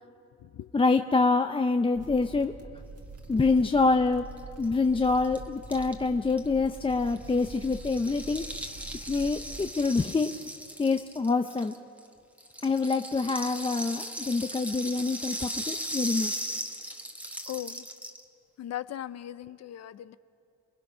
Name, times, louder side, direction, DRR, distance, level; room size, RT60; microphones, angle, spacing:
voice 1, 0.7-2.5 3.3-4.3 4.6-8.6 9.1-10.4 10.8-11.7 12.6-16.5, left 3 dB, 20° left, 7 dB, 0.6 m, -26 dB
sound 1, 1.9-9.7, right 3 dB, 55° right, 1.8 m, -45 dB
Rattle (instrument), 4.4-4.5 4.6-4.7 4.9-12.1 12.4-18.2, equal, 5° right, 1.5 m, -38 dB
voice 2, 17.5-17.9 18.6-20.2, left 12 dB, 60° left, 15 dB, 0.7 m, -38 dB
28.5 x 20.5 x 5.6 m, 2.6 s
cardioid pair, 90°, 30 cm